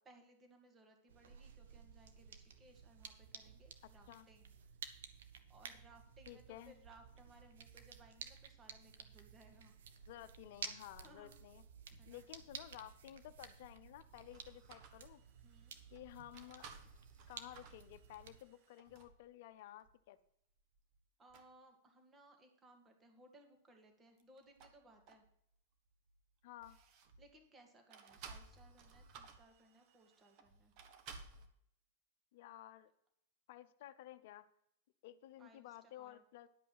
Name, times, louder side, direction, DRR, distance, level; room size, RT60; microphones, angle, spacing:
voice 1, 0.0-4.5 5.5-9.7 11.0-11.4 11.9-12.2 15.4-15.7 21.2-25.2 27.2-30.7 35.4-36.2, right 1 dB, 20° right, 4 dB, 2.1 m, -64 dB
sound 1, 1.1-18.4, right 7 dB, 70° right, 1.2 m, -54 dB
voice 2, 6.3-6.7 10.1-11.6 12.0-15.2 15.9-16.6 17.3-20.2 26.4-26.8 32.3-32.9 33.5-34.5 35.0-36.5, left 13 dB, 60° left, 11 dB, 0.8 m, -54 dB
sound 2, 14.1-19.2 19.8-19.9 20.6-21.0 21.3-21.5 24.1-25.5 25.9-27.4 27.9-31.5, right 5 dB, 50° right, 1.5 m, -58 dB
11.0 x 5.4 x 7.7 m, 0.72 s
hypercardioid pair, 105°, 0 cm